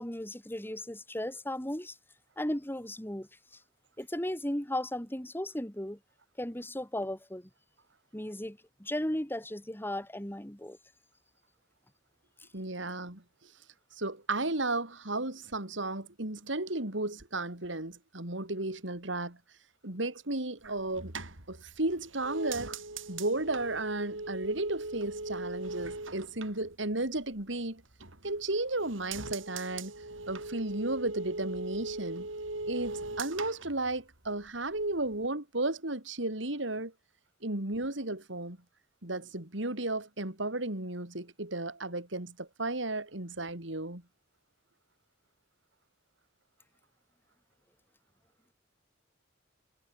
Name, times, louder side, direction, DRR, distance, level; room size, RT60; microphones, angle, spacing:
voice 1, 0.0-1.9 2.4-3.3 4.0-6.0 6.4-7.5 8.1-10.8, left 1 dB, 10° left, 3.2 m, -36 dB
voice 2, 12.5-13.5 14.0-19.4 19.8-21.1 21.5-22.8 23.1-27.8 28.2-29.9 30.3-32.3 32.7-36.9 37.4-38.6 39.0-44.0, right 2 dB, 70° right, 3.8 m, -34 dB
sound 1, 20.6-27.4 27.8-28.5 28.8-34.5 34.8-35.3, right 2 dB, 90° right, 5.8 m, -40 dB
head